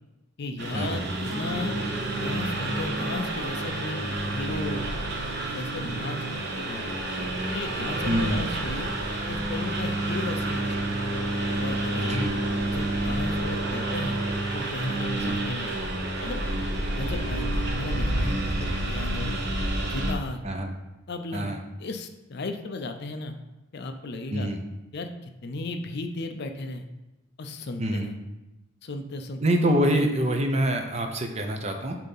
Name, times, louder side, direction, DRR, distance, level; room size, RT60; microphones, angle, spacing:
voice 1, 0.4-1.7 2.1-4.8 5.4-6.2 6.6-6.9 7.5-8.9 9.3-11.0 11.6-12.3 12.7-14.2 14.5-15.7 16.2-16.4 17.0-19.3 19.8-20.4 21.1-21.5 21.8-23.4 23.7-24.5 24.9-26.9 27.4-28.2 28.8-29.4 29.9-30.1, left 2 dB, 50° left, 6 dB, 0.5 m, -35 dB
Engine, 0.6-20.1, right 1 dB, 50° right, 1.1 m, -29 dB
sound 1, 1.2-5.5, right 1 dB, 70° right, 2.1 m, -42 dB
voice 2, 8.1-8.5 12.0-12.3 15.2-15.4 18.6-18.7 20.4-20.7 21.3-21.6 24.3-24.6 27.8-28.1 29.4-32.0, right 1 dB, 30° right, 4 dB, 0.6 m, -25 dB
7.4 x 2.8 x 5.4 m, 1.0 s
head